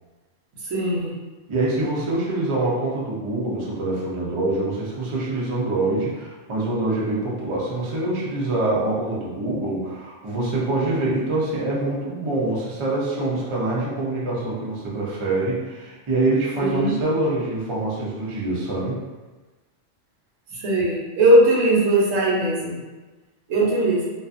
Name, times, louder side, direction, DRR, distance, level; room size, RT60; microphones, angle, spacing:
voice 1, 0.6-1.1 16.6-16.9 20.5-22.8 23.5-24.1, right 1 dB, 90° right, -4 dB, 1.1 m, -19 dB
voice 2, 1.5-19.0 23.6-23.7, right 2 dB, 40° right, -6 dB, 0.4 m, -25 dB
2.5 x 2.3 x 2.4 m, 1.2 s
omnidirectional pair, 1.3 m